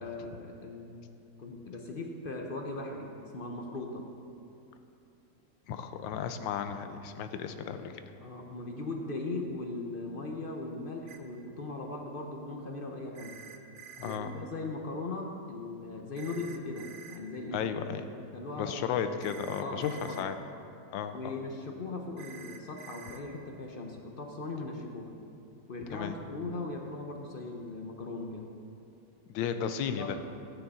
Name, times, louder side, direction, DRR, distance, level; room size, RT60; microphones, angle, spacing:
voice 1, 0.0-1.0 1.4-4.1 8.2-13.4 14.0-17.7 18.3-18.8 19.6-20.3 21.1-25.1 25.7-28.5 29.9-30.1, left 2 dB, 60° left, 2 dB, 0.5 m, -39 dB
voice 2, 5.7-7.9 14.0-14.3 17.5-18.1 18.6-20.4 20.9-21.4 25.9-26.1 29.3-30.2, left 8 dB, 85° left, 9 dB, 1.4 m, -34 dB
sound 1, 11.1-11.2 13.2-14.2 16.2-17.2 19.2-20.2 22.2-23.2, right 7 dB, 85° right, 1.5 m, -49 dB
13.0 x 9.2 x 4.1 m, 2.7 s
omnidirectional pair, 2.0 m